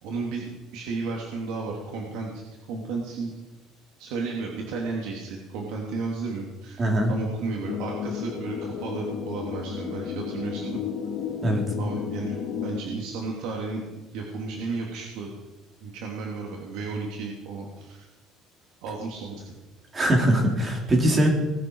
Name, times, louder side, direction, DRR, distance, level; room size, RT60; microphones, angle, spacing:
voice 1, 0.0-2.4 2.7-3.3 4.0-6.8 7.1-10.8 11.8-13.8 14.1-15.3 15.8-18.1 18.8-19.6, right 4 dB, 80° right, -1 dB, 2.9 m, -33 dB
voice 2, 6.8-7.1 11.4-11.6 19.9-21.3, right 1 dB, 25° right, 1 dB, 3.8 m, -21 dB
sound 1, 7.7-12.8, left 7 dB, 55° left, 2.4 m, -33 dB
20.5 x 11.5 x 4.8 m, 1.1 s
cardioid pair, 145°, 0 cm